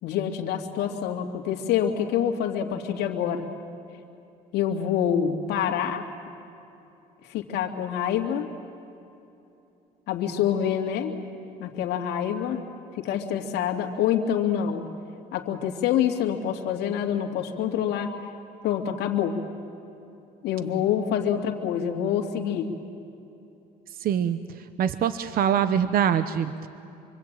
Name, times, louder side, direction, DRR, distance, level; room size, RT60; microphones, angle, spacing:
voice 1, 0.0-3.5 4.5-6.1 7.2-8.5 10.1-11.1 11.6-12.6 12.9-14.8 15.3-18.1 18.6-19.4 20.4-22.7, left 9 dB, 80° left, 3 dB, 2.5 m, -26 dB
voice 2, 24.0-24.4 24.8-26.7, right 9 dB, 60° right, 12 dB, 0.9 m, -24 dB
26.5 x 25.0 x 9.0 m, 2.8 s
cardioid pair, 110°, 17 cm